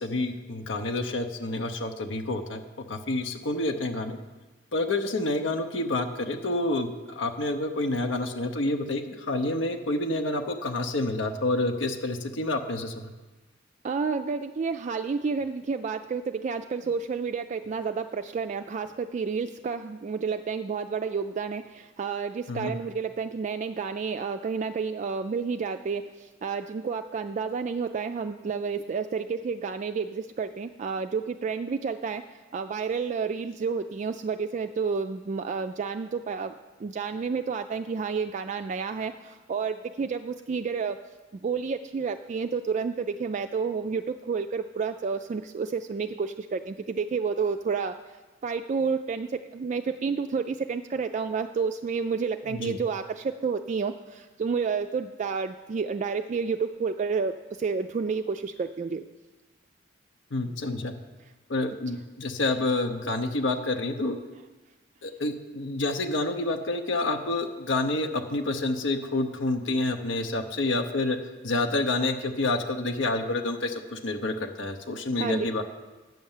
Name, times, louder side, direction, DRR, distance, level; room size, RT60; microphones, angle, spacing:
voice 1, 0.0-2.6 2.9-4.2 4.7-13.0 22.5-22.7 52.5-52.8 60.3-60.9 61.5-64.2 65.0-71.2 71.4-75.6, left 2 dB, 75° left, 5 dB, 0.8 m, -28 dB
voice 2, 13.8-26.1 26.4-32.2 32.5-36.5 36.8-41.0 41.4-47.9 48.4-59.0 75.2-75.5, right 5 dB, 40° right, 8 dB, 0.3 m, -30 dB
9.2 x 6.5 x 7.2 m, 1.2 s
head